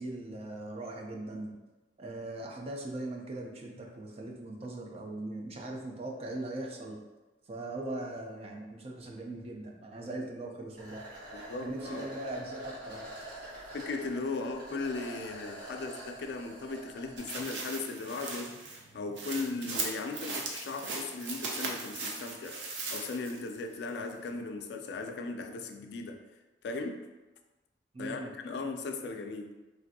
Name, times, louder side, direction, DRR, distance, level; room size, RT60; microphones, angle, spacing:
voice 1, 0.0-1.6 2.0-7.0 7.5-11.1 11.6-13.1 27.9-28.3, right 2 dB, 35° right, 1 dB, 0.4 m, -40 dB
sound 1, 10.8-17.4, right 1 dB, 50° right, 1.2 m, -46 dB
voice 2, 11.3-12.1 13.7-26.2 26.6-27.1 28.0-29.5, left 3 dB, 70° left, 5 dB, 0.3 m, -37 dB
sound 2, 17.2-23.5 23.9-24.0, right 3 dB, 85° right, 0.5 m, -38 dB
3.1 x 2.5 x 2.6 m, 1.1 s
head